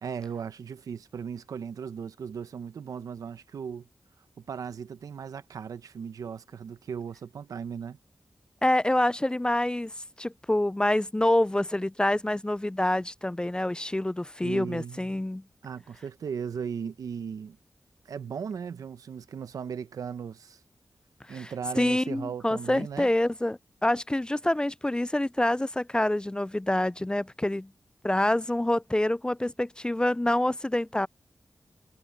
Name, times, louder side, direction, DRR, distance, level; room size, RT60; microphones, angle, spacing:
voice 1, 0.0-3.9 4.5-8.0 14.4-15.2 15.6-17.6 18.0-20.6 21.3-23.1, right 7 dB, 90° right, 0.9 m, -37 dB
voice 2, 8.6-9.9 10.2-15.4 21.3-27.7 28.0-31.1, left 1 dB, 15° left, 0.4 m, -26 dB
cardioid pair, 45°, 6 cm